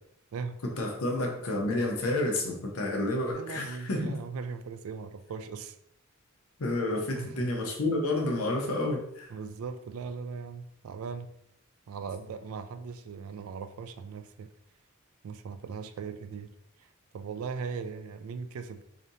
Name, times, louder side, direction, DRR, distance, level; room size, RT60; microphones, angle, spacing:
voice 1, 0.8-4.1 6.6-9.3, left 2 dB, 80° left, 0 dB, 0.7 m, -30 dB
voice 2, 3.3-5.8 7.2-7.5 9.3-11.3 11.9-14.5 15.2-16.5 16.8-16.9 17.1-18.8, right 5 dB, 80° right, 9 dB, 0.3 m, -39 dB
4.9 x 2.7 x 2.7 m, 0.75 s
head